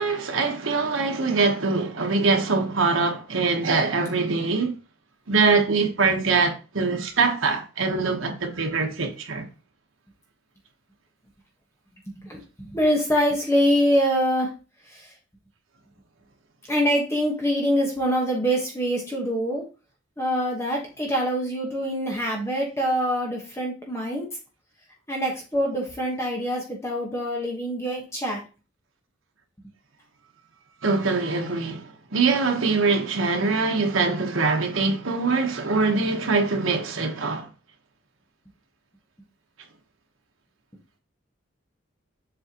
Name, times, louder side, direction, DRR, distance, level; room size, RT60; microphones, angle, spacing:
voice 1, 0.0-4.7 5.3-9.5 30.8-37.5, right 4 dB, 80° right, 1.1 m, -23 dB
voice 2, 12.2-14.5 14.9-15.1 16.7-19.6 20.2-24.3 25.1-28.4, equal, 15° left, 1.2 m, -24 dB
7.5 x 4.5 x 2.9 m
head